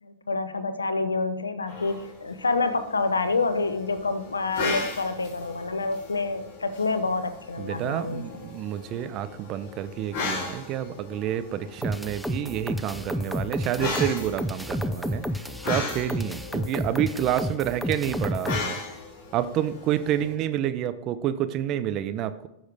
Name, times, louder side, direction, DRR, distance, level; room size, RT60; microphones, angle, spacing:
voice 1, 0.0-8.3, left 3 dB, 90° left, 11 dB, 0.8 m, -27 dB
sound 1, 1.7-20.3, left 4 dB, 50° left, 3.9 m, -37 dB
voice 2, 7.6-15.2 15.6-18.8 19.3-22.5, right 11 dB, 40° right, 12 dB, 0.7 m, -29 dB
sound 2, 11.8-18.7, equal, ahead, 0.5 m, -30 dB
14.5 x 6.3 x 3.5 m, 0.85 s
hypercardioid pair, 100°, 0 cm